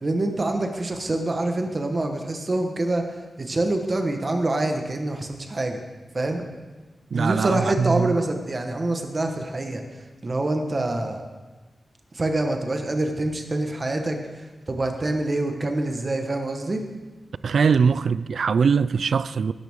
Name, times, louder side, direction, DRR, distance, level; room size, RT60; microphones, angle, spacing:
voice 1, 0.0-5.8 6.1-6.5 7.1-11.2 12.1-16.8, right 2 dB, 30° right, 1.2 m, -26 dB
voice 2, 7.1-8.1 17.4-19.5, right 6 dB, 65° right, 0.3 m, -21 dB
19.0 x 10.5 x 3.6 m
wide cardioid pair, 175°, 0 cm